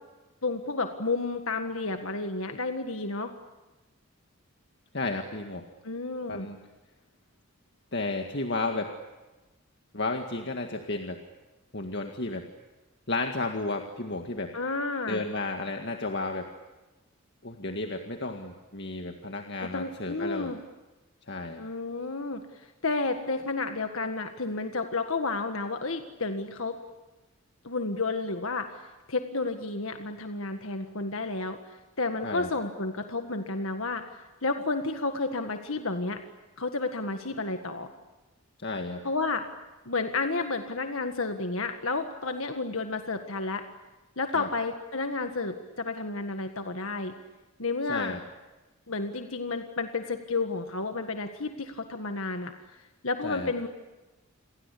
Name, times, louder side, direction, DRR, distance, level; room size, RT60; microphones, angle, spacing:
voice 1, 0.4-3.3 5.8-6.5 14.5-15.2 19.6-20.6 21.6-26.8 27.6-36.2 36.6-37.9 39.0-39.4 39.9-43.6 44.2-47.1 47.6-48.2 48.9-53.7, left 3 dB, 70° left, 6 dB, 1.8 m, -31 dB
voice 2, 4.9-5.6 6.3-6.6 7.9-8.9 9.9-11.2 11.7-12.5 13.1-14.5 15.1-16.5 17.4-20.5 21.3-21.6 32.2-32.5 38.6-39.0 44.4-44.5 47.9-48.2 53.2-53.5, left 2 dB, 50° left, 4 dB, 2.0 m, -32 dB
29.5 x 23.0 x 8.5 m, 1.1 s
head